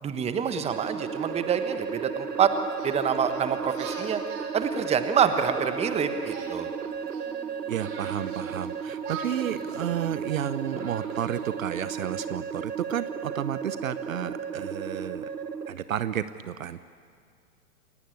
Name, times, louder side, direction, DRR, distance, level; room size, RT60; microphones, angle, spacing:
voice 1, 0.0-2.5 2.8-4.2 4.5-6.7, right 7 dB, 15° right, 9 dB, 1.3 m, -26 dB
sound 1, 0.7-15.7, right 6 dB, 85° right, 1.4 m, -34 dB
Singing, 2.7-5.7 6.2-8.7 9.0-11.6, right 5 dB, 40° right, 5.9 m, -44 dB
voice 2, 7.7-15.3 15.7-16.8, right 10 dB, 55° right, 14 dB, 0.9 m, -32 dB
28.5 x 18.0 x 8.6 m, 2.2 s
figure-of-eight pair, 110°, 47 cm